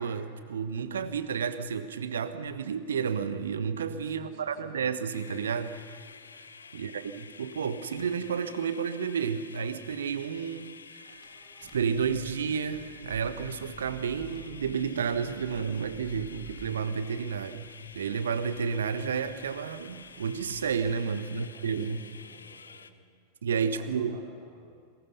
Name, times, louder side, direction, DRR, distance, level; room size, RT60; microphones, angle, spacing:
voice 1, 0.0-6.0 6.7-10.7 11.0-11.2 11.6-17.6 17.9-22.0 23.4-24.2, right 6 dB, 65° right, 12 dB, 1.3 m, -31 dB
voice 2, 4.0-4.8 6.7-7.2 21.3-23.0 23.6-24.8, right 4 dB, 50° right, -1 dB, 4.2 m, -54 dB
sound 1, 5.1-22.9, left 5 dB, 75° left, 0.8 m, -50 dB
sound 2, 11.1-20.9, right 4 dB, 25° right, 2.5 m, -51 dB
29.5 x 21.0 x 5.6 m, 2.1 s
figure-of-eight pair, 90°, 0 cm